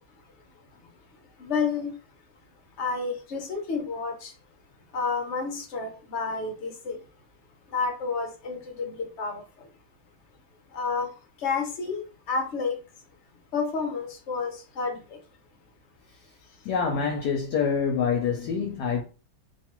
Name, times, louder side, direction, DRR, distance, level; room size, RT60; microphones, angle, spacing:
voice 1, 1.4-1.9 2.8-4.3 4.9-7.0 7.7-9.4 10.7-11.1 11.4-12.7 13.5-15.2, left 4 dB, 55° left, 0.8 m, -30 dB
voice 2, 16.6-19.0, left 6 dB, 75° left, 1.1 m, -26 dB
2.9 x 2.2 x 2.9 m
omnidirectional pair, 1.8 m